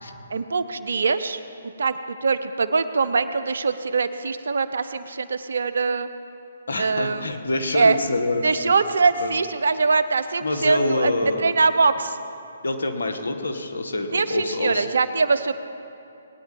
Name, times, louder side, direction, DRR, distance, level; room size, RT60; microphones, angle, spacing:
voice 1, 0.3-1.4 1.8-6.1 6.8-7.3 7.7-8.0 8.4-11.1 11.4-12.2 14.1-15.5, right 4 dB, 70° right, 12 dB, 0.8 m, -22 dB
voice 2, 6.7-8.7 9.2-9.4 10.4-11.5 12.6-14.9, left 2 dB, 70° left, 5 dB, 1.8 m, -26 dB
20.5 x 9.7 x 5.4 m, 2.8 s
figure-of-eight pair, 140°, 0 cm